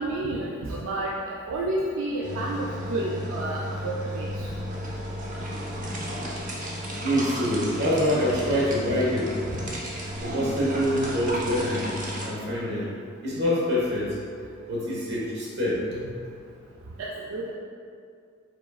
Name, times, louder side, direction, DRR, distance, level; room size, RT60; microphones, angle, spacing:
voice 1, 0.0-4.3 17.0-17.5, right 2 dB, 80° right, -3 dB, 0.4 m, -30 dB
sound 1, 2.2-12.3, equal, 40° right, 0.7 m, -33 dB
voice 2, 6.9-9.3 10.2-12.9 13.2-14.2 14.7-16.1, equal, 55° right, -6 dB, 1.3 m, -26 dB
4.8 x 4.1 x 2.4 m, 2.2 s
head